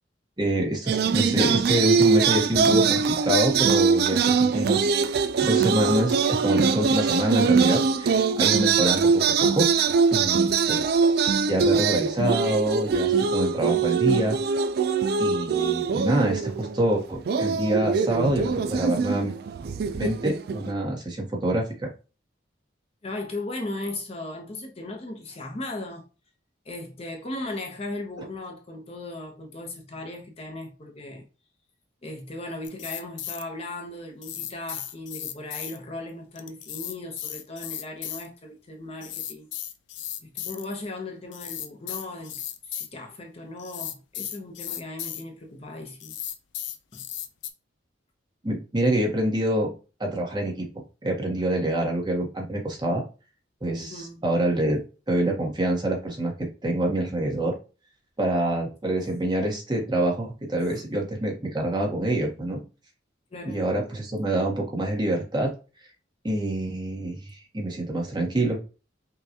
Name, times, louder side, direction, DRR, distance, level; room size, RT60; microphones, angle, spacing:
voice 1, 0.4-9.7 10.1-10.9 11.5-14.3 15.2-19.3 20.0-21.9 48.4-49.7 50.0-50.6 51.0-53.0 53.6-54.8 55.1-56.3 56.6-57.5 58.2-62.6 63.5-65.5 66.2-68.6, right 1 dB, 25° right, 1.0 m, -26 dB
sound 1, 0.9-16.9 17.3-20.7, right 5 dB, 55° right, 0.3 m, -22 dB
voice 2, 23.0-26.0 26.7-31.2 32.0-39.5 40.2-46.2 46.9-47.0 53.8-54.2 60.6-60.8 63.3-63.6, left 2 dB, 35° left, 0.7 m, -37 dB
sound 2, 32.6-33.4 34.2-35.8 36.4-38.3 39.0-40.6 41.3-42.9 43.6-45.2 46.0-47.5, left 11 dB, 80° left, 0.4 m, -35 dB
5.6 x 2.3 x 2.8 m
head